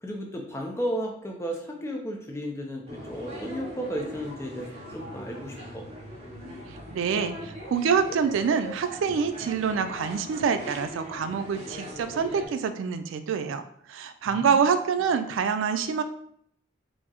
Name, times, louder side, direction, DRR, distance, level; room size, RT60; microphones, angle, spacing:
voice 1, 0.0-5.8 14.3-14.6, equal, 15° left, 1 dB, 0.4 m, -34 dB
sound 1, 2.9-12.5, equal, 30° right, 0.6 m, -40 dB
voice 2, 6.9-13.6 13.9-16.0, right 6 dB, 85° right, 9 dB, 0.3 m, -26 dB
4.3 x 2.0 x 2.9 m, 0.67 s
head